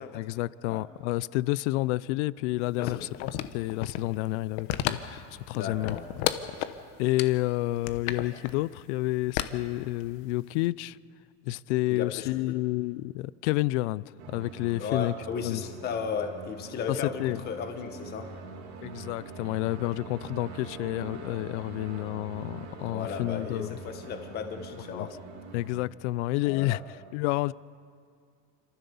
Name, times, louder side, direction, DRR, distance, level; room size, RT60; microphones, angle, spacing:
voice 1, 0.0-6.0 7.0-11.0 11.4-15.1 15.4-15.6 16.9-17.4 18.8-23.8 24.9-25.1 25.5-26.8 27.1-27.5, left 18 dB, 80° left, 0.6 m, -30 dB
sound 1, 2.8-4.1 4.5-5.2 5.5-6.8 7.2-7.3 7.8-8.5 9.4-10.3 10.6-10.7, left 13 dB, 60° left, 1.1 m, -31 dB
voice 2, 2.8-3.1 5.5-6.1 11.9-12.3 14.8-18.3 22.8-25.1 26.5-26.8, left 6 dB, 30° left, 1.4 m, -35 dB
sound 2, 14.2-25.8, right 4 dB, 75° right, 3.0 m, -44 dB
27.0 x 14.5 x 7.0 m
cardioid pair, 170°, 35 cm